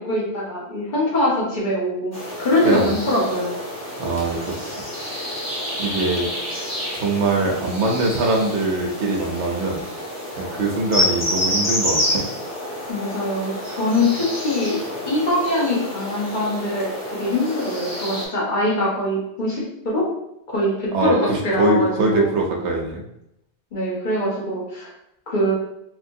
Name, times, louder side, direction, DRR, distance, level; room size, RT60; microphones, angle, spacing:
voice 1, 0.0-3.5 12.9-14.8 15.1-20.0 20.5-22.3 23.7-24.9 25.3-25.5, left 1 dB, 45° left, -5 dB, 1.2 m, -23 dB
sound 1, 2.1-18.3, left 1 dB, 20° left, 0.6 m, -28 dB
voice 2, 2.6-2.9 4.0-4.7 5.8-6.3 6.9-9.8 10.4-12.2 20.9-23.0, right 2 dB, 85° right, 0 dB, 0.9 m, -22 dB
3.1 x 3.0 x 2.6 m, 0.83 s
omnidirectional pair, 1.1 m